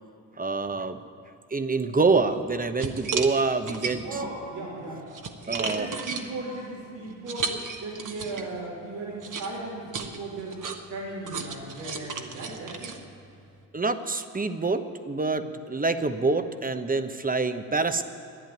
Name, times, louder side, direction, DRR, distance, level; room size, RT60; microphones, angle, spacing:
voice 1, 0.4-1.0 1.5-4.2 5.5-5.9 13.7-18.0, right 3 dB, 20° right, 10 dB, 1.0 m, -26 dB
sound 1, 2.3-2.4 2.8-4.3 4.8-8.6 9.2-13.6, right 5 dB, 50° right, 1.4 m, -34 dB
voice 2, 4.0-5.1 5.5-10.6 10.9-13.0 15.3-15.5, right 2 dB, 80° right, -5 dB, 3.2 m, -37 dB
12.5 x 10.0 x 9.4 m, 2.6 s
hypercardioid pair, 50°, 41 cm